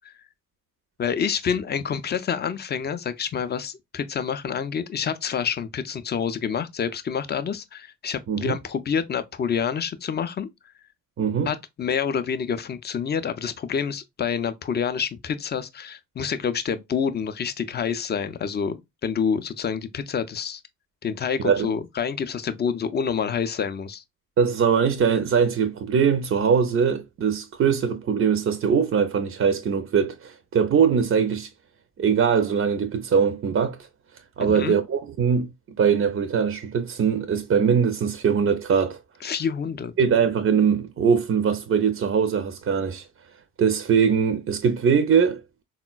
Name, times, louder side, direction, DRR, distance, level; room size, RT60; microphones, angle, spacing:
voice 1, 1.0-10.5 11.5-20.6 21.0-24.0 34.4-34.8 39.2-39.9, left 7 dB, 25° left, 0.4 m, -27 dB
voice 2, 11.2-11.5 21.4-21.7 24.4-31.5 32.0-33.8 34.4-39.0 40.0-43.0 43.6-45.4, right 6 dB, 35° right, 0.5 m, -21 dB
3.7 x 2.1 x 2.2 m
hypercardioid pair, 50°, 41 cm